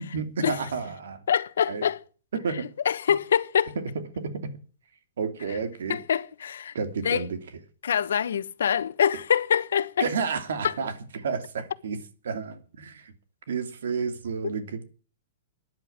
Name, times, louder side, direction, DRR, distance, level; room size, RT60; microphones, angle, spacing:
voice 1, 0.0-1.2 1.7-1.9 2.3-2.7 4.2-4.5 5.2-6.0 6.7-7.4 10.0-13.1 13.5-14.9, right 5 dB, 80° right, 2.8 m, -31 dB
voice 2, 1.3-2.0 2.8-3.7 5.9-6.7 7.0-7.3 7.8-10.1 10.6-10.7 14.4-14.5, left 8 dB, 90° left, 1.1 m, -24 dB
13.0 x 10.5 x 8.8 m
hypercardioid pair, 180°, 0 cm